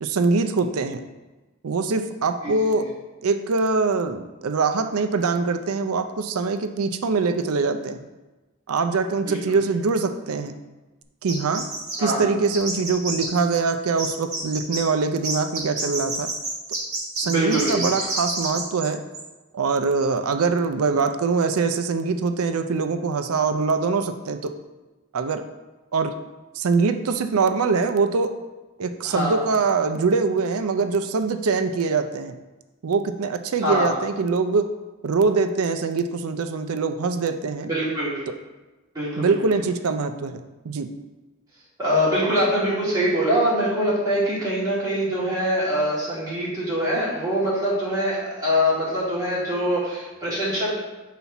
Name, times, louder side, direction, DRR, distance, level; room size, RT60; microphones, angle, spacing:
voice 1, 0.0-1.0 1.6-2.9 3.2-8.0 8.7-10.6 11.2-11.6 12.0-16.3 17.2-19.0 19.5-24.5 25.1-25.5 25.9-26.1 26.5-28.3 28.8-32.4 32.8-34.7 35.0-37.7 38.3-38.4 39.2-40.9, right 4 dB, 80° right, 8 dB, 0.5 m, -23 dB
voice 2, 2.4-2.8 9.2-9.6 12.0-12.2 17.2-17.7 29.0-29.4 33.6-33.9 37.6-38.3 38.9-39.4 41.8-50.7, equal, 15° right, -9 dB, 2.4 m, -24 dB
sound 1, 11.3-12.1 12.5-13.7 14.0-14.8 15.2-18.9 19.1-19.2, right 2 dB, 35° right, 2.2 m, -29 dB
5.7 x 4.1 x 5.8 m, 1.1 s
head